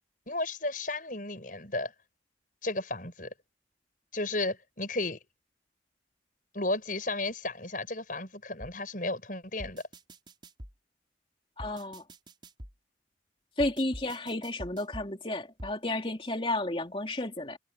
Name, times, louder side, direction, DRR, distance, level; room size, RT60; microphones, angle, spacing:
voice 1, 0.3-1.9 2.6-3.3 4.1-5.2 6.5-9.8, left 2 dB, 45° left, 7.8 m, -33 dB
sound 1, 8.6-8.7 9.6-10.7 11.6-12.7 13.6-15.1 15.6-15.7, equal, 25° right, 5.0 m, -44 dB
voice 2, 11.6-12.0 13.6-17.6, left 1 dB, 30° left, 3.3 m, -32 dB
head